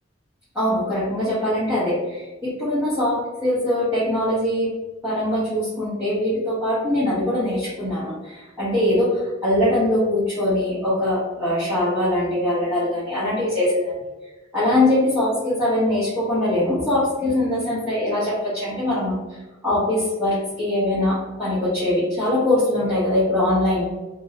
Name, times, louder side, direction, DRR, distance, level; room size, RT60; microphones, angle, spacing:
voice 1, 0.5-4.7 5.0-13.9 14.5-23.9, left 1 dB, 10° right, -14 dB, 0.8 m, -22 dB
2.5 x 2.0 x 2.7 m, 1.2 s
head